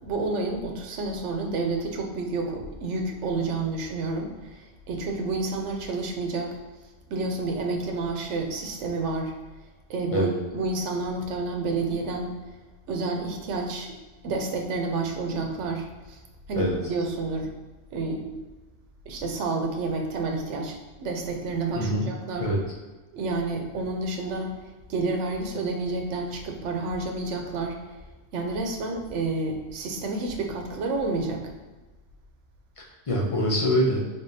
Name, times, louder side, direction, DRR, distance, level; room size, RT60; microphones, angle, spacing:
voice 1, 0.0-6.6 7.1-9.3 9.9-12.3 12.9-13.9 14.2-16.2 16.5-17.5 17.9-18.3 19.1-22.5 23.1-24.5 24.9-27.8 28.3-31.5, right 3 dB, 85° right, 2 dB, 1.0 m, -29 dB
voice 2, 21.7-22.1 22.4-22.6 32.8-34.0, equal, 35° left, -3 dB, 0.6 m, -24 dB
3.9 x 3.5 x 2.7 m, 1.2 s
omnidirectional pair, 1.2 m